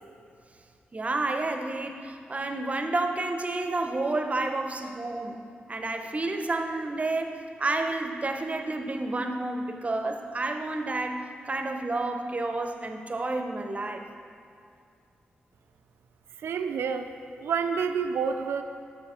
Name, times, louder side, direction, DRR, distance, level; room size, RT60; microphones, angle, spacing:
voice 1, 0.9-5.4 5.7-14.1, right 2 dB, 35° right, 5 dB, 0.7 m, -30 dB
voice 2, 16.4-17.1 17.4-18.6, right 6 dB, 85° right, 8 dB, 0.4 m, -28 dB
6.6 x 6.2 x 4.3 m, 2.4 s
cardioid pair, 60°, 4 cm